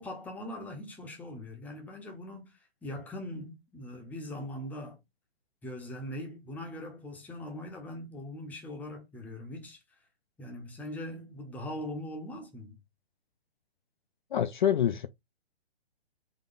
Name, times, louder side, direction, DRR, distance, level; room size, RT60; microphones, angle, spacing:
voice 1, 0.0-5.0 5.6-9.8 10.4-12.8, left 1 dB, 5° left, 0.7 m, -41 dB
voice 2, 14.3-15.1, left 10 dB, 50° left, 0.4 m, -26 dB
4.0 x 2.9 x 3.8 m
figure-of-eight pair, 130°, 33 cm